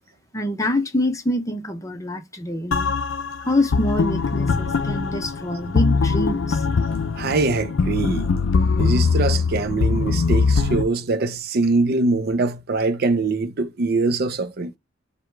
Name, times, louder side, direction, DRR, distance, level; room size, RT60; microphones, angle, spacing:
voice 1, 0.3-2.9 3.5-6.6, left 1 dB, 15° left, 0.7 m, -25 dB
sound 1, 2.7-10.8, left 4 dB, 75° left, 0.5 m, -22 dB
voice 2, 7.2-8.3 8.8-14.7, right 3 dB, 55° right, 0.5 m, -23 dB
4.8 x 2.3 x 4.4 m
head